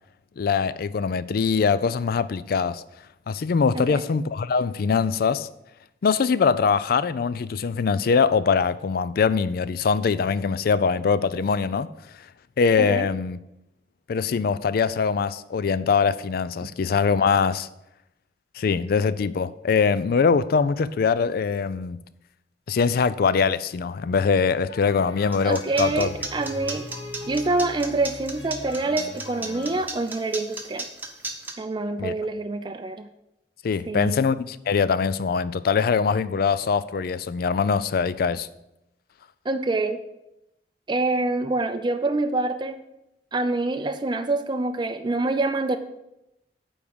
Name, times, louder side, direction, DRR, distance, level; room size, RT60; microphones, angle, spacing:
voice 1, 0.4-2.8 3.3-5.5 6.0-11.9 12.6-13.4 14.1-17.7 18.6-22.0 22.7-26.1 32.0-32.1 33.6-38.5, left 5 dB, 55° left, 0.4 m, -22 dB
voice 2, 12.8-13.1 25.4-26.9 27.3-30.9 31.6-33.1 33.9-34.2 39.5-40.0 40.9-42.8 43.3-45.8, right 2 dB, 25° right, 0.4 m, -26 dB
sound 1, 24.7-29.8, left 2 dB, 85° left, 1.3 m, -40 dB
sound 2, 25.3-31.5, right 3 dB, 10° right, 1.0 m, -33 dB
9.3 x 3.6 x 6.9 m
head